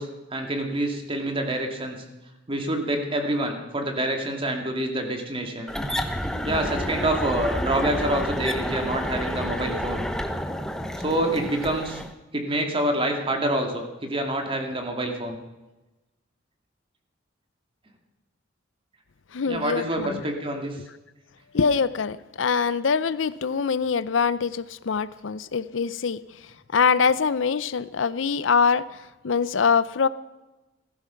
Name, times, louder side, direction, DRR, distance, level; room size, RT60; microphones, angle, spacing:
voice 1, 0.0-2.0 2.5-5.7 6.4-10.0 11.0-12.0 12.3-15.4 19.5-20.8, right 1 dB, 30° right, 3 dB, 2.4 m, -27 dB
sound 1, 5.7-12.1, equal, 5° left, 1.0 m, -29 dB
voice 2, 19.3-20.2 21.5-26.2 26.7-30.1, left 5 dB, 80° left, 16 dB, 0.6 m, -24 dB
16.5 x 14.5 x 5.8 m, 1.1 s
head